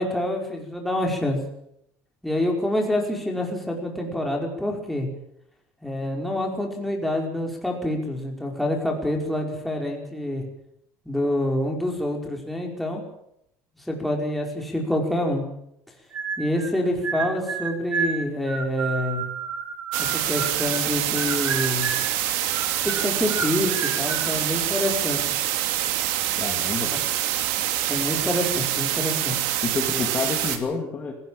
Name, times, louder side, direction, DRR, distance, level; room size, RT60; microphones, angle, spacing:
voice 1, 0.0-1.4 2.2-5.1 5.8-10.4 11.0-13.0 13.9-15.4 16.4-19.2 20.0-21.9 22.8-25.2 26.9-27.0 27.9-29.4, left 1 dB, ahead, 1 dB, 5.0 m, -27 dB
sound 1, 16.1-16.7 17.0-20.9 21.2-22.1 22.5-24.3, right 5 dB, 30° right, 3.9 m, -31 dB
sound 2, 19.9-30.6, right 12 dB, 90° right, 2.7 m, -25 dB
voice 2, 26.4-26.9 29.6-31.1, left 4 dB, 25° left, 2 dB, 2.8 m, -28 dB
18.5 x 17.5 x 8.9 m, 0.75 s
cardioid pair, 150°, 6 cm